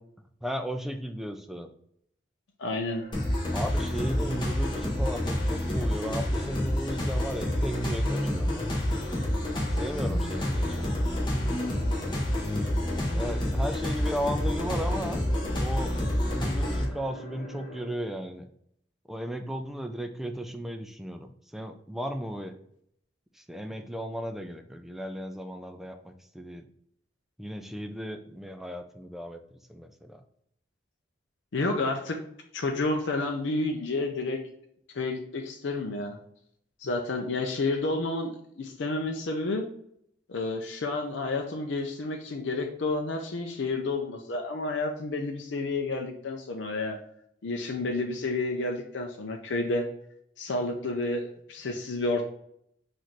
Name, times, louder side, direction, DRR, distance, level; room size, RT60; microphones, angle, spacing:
voice 1, 0.4-1.7 3.5-8.8 9.8-11.1 13.1-15.2 15.6-15.9 16.3-18.5 19.1-22.5 23.4-26.7 27.4-29.4 29.7-30.2, equal, ahead, 6 dB, 0.3 m, -35 dB
voice 2, 2.6-3.0 31.5-32.2 32.5-34.4 34.9-36.2 36.8-39.6 40.3-47.0 47.4-49.9 50.4-52.2, left 2 dB, 70° left, 2 dB, 0.5 m, -30 dB
sound 1, 2.8-17.9, equal, 45° left, 1.3 m, -47 dB
sound 2, 3.1-16.8, left 1 dB, 25° left, 0.8 m, -28 dB
4.1 x 2.5 x 4.5 m, 0.71 s
head